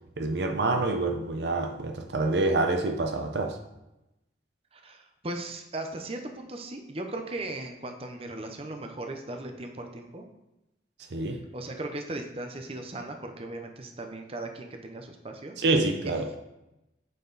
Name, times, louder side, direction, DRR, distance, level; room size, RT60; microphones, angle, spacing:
voice 1, 0.2-3.6 11.1-11.4 15.6-16.4, right 2 dB, 70° right, 6 dB, 0.7 m, -27 dB
voice 2, 4.7-10.2 11.3-15.6, right 2 dB, 35° right, 4 dB, 0.7 m, -38 dB
8.3 x 4.6 x 3.9 m, 0.93 s
head